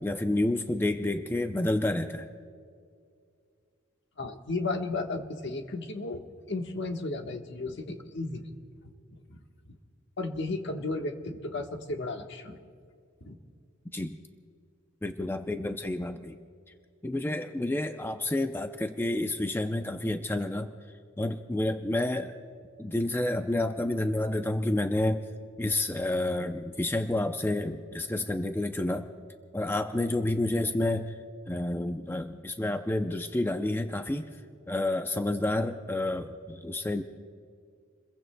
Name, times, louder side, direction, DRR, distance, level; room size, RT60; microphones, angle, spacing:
voice 1, 0.0-2.3 13.9-14.2 15.0-16.4 17.0-20.7 21.2-22.3 22.8-25.3 25.6-29.1 29.5-31.1 31.5-34.3 34.7-37.0, left 1 dB, 10° left, 6 dB, 0.5 m, -29 dB
voice 2, 4.2-6.2 6.5-8.5 9.1-9.4 9.7-9.8 10.2-12.6 13.2-13.4, left 2 dB, 60° left, 4 dB, 1.3 m, -34 dB
29.0 x 22.0 x 2.2 m, 2.2 s
head